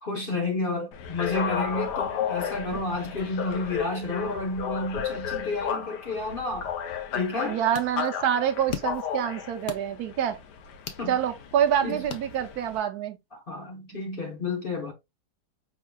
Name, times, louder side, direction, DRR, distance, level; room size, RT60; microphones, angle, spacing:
voice 1, 0.0-6.7 7.1-7.6 11.0-11.2 11.8-12.0 13.3-14.9, left 3 dB, 40° left, 0.9 m, -31 dB
sound 1, 0.9-12.8, left 8 dB, 90° left, 1.3 m, -34 dB
sound 2, 7.2-12.9, left 8 dB, 65° left, 0.5 m, -43 dB
voice 2, 7.4-10.4 11.1-13.2, right 9 dB, 75° right, 1.1 m, -26 dB
5.0 x 3.6 x 2.3 m
omnidirectional pair, 1.7 m